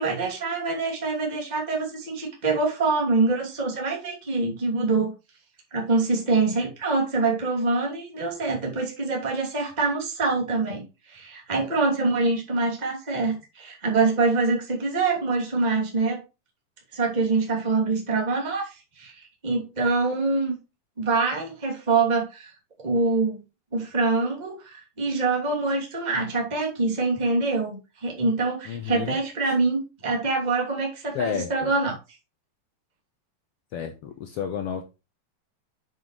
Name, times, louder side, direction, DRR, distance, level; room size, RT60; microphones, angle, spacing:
voice 1, 0.0-5.1 5.7-10.8 11.1-16.2 16.9-19.1 19.4-20.5 21.0-22.5 22.8-23.4 23.7-32.0, right 3 dB, 15° right, 2.4 m, -25 dB
voice 2, 28.7-29.2 29.4-29.5 31.1-31.7 33.7-34.8, left 8 dB, 80° left, 1.3 m, -31 dB
8.0 x 7.7 x 3.2 m
omnidirectional pair, 4.1 m